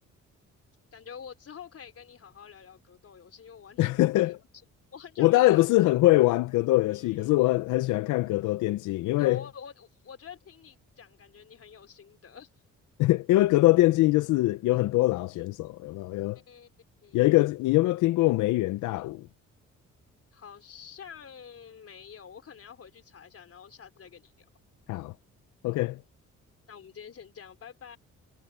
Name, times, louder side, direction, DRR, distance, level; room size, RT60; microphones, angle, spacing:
voice 1, 0.9-4.4 4.9-5.7 6.9-7.4 9.2-12.5 16.5-16.7 17.0-17.2 20.3-24.5 26.7-28.0, left 7 dB, 50° left, 4.0 m, -47 dB
voice 2, 3.8-4.4 5.2-9.4 13.0-16.4 17.1-19.2 24.9-25.1 25.6-26.0, left 18 dB, 90° left, 0.6 m, -23 dB
cardioid pair, 90°, 30 cm